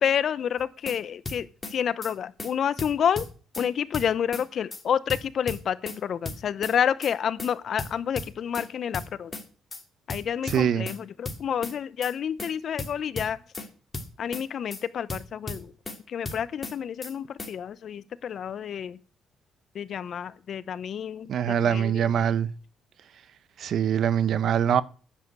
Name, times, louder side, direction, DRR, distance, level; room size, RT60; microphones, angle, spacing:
voice 1, 0.0-3.3 3.6-9.3 10.1-13.4 14.2-15.7 16.1-19.0 19.7-22.3, left 8 dB, 60° left, 0.8 m, -29 dB
sound 1, 0.6-1.0 1.3-1.7 2.0-2.1 2.4-2.5 2.8-3.7 3.9-4.4 4.7-4.8 5.1-6.0 6.3-6.7 7.0-7.1 7.4-7.5 7.8-8.7 8.9-9.4 9.7-9.8 10.1-11.0 11.3-11.7 12.0-12.1 12.4-12.5 12.8-13.7 13.9-14.4 14.7-14.8 15.1-16.0 16.3-16.7 17.0-17.1 17.4-17.5, left 2 dB, 25° left, 2.5 m, -36 dB
voice 2, 10.5-10.9 21.3-22.5 23.6-24.8, right 8 dB, 65° right, 0.9 m, -23 dB
10.0 x 7.5 x 8.2 m
cardioid pair, 90°, 0 cm